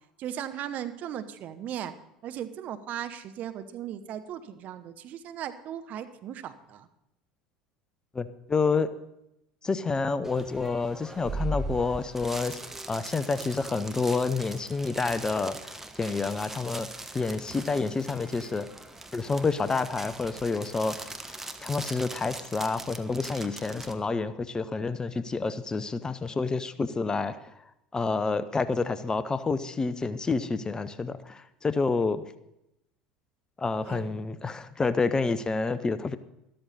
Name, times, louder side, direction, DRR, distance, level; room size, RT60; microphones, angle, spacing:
voice 1, 0.2-1.9 2.2-6.9 33.8-34.3, right 10 dB, 45° right, 10 dB, 0.9 m, -37 dB
voice 2, 8.1-8.9 9.6-12.6 12.9-16.9 17.1-18.7 19.1-21.1 21.6-27.3 27.9-32.2 33.6-36.2, left 4 dB, 20° left, 13 dB, 0.7 m, -28 dB
sound 1, 10.2-23.9, right 2 dB, 10° right, 1.2 m, -40 dB
13.0 x 13.0 x 4.2 m, 0.83 s
figure-of-eight pair, 70°, 4 cm